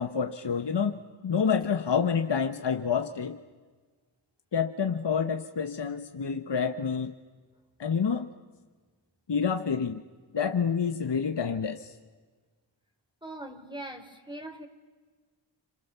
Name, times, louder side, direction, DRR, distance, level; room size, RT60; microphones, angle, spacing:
voice 1, 0.0-3.4 4.5-7.1 7.8-8.3 9.3-10.0 10.3-11.9, left 6 dB, 65° left, 7 dB, 1.3 m, -28 dB
voice 2, 13.2-14.7, right 1 dB, 10° right, 5 dB, 3.8 m, -41 dB
30.0 x 27.0 x 6.9 m, 1.4 s
cardioid pair, 45°, 46 cm